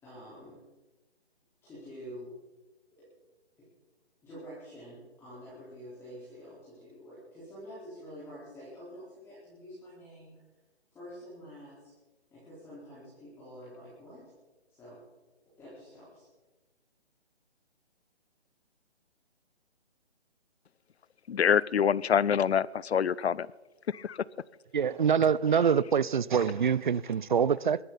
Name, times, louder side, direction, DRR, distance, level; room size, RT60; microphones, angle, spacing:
voice 1, 0.0-0.6 1.6-2.3 3.0-3.1 3.6-3.7 4.2-10.4 10.9-11.9 12.3-14.3 14.7-15.0 15.6-16.3, equal, 5° left, -11 dB, 4.1 m, -47 dB
voice 2, 21.3-23.5 23.9-24.2, left 8 dB, 70° left, 22 dB, 0.6 m, -26 dB
voice 3, 24.7-27.8, right 7 dB, 45° right, 21 dB, 0.5 m, -25 dB
23.0 x 12.5 x 4.1 m, 1.1 s
hypercardioid pair, 160°, 34 cm